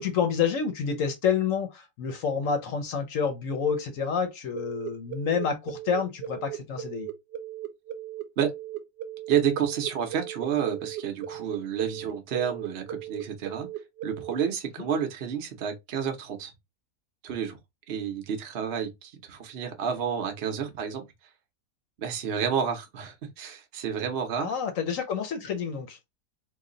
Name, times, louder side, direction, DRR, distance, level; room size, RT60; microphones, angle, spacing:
voice 1, 0.0-7.1 24.4-26.0, left 6 dB, 60° left, 1.0 m, -28 dB
sound 1, 4.5-14.4, right 11 dB, 85° right, 1.3 m, -37 dB
voice 2, 9.3-13.7 14.0-16.5 17.2-17.6 17.9-21.1 22.0-24.5, right 8 dB, 50° right, 0.8 m, -30 dB
3.1 x 2.3 x 3.8 m
omnidirectional pair, 1.8 m